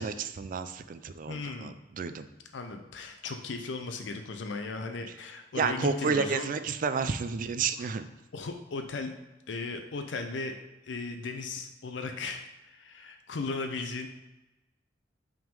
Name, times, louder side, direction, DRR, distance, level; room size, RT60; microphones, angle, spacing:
voice 1, 0.0-2.3 5.1-5.2 5.5-8.1, right 5 dB, 45° right, 10 dB, 0.4 m, -31 dB
voice 2, 1.3-1.7 2.5-6.5 8.3-9.1 9.5-10.6 10.8-14.1, left 3 dB, 70° left, 5 dB, 0.5 m, -36 dB
5.7 x 3.7 x 5.2 m, 1.0 s
head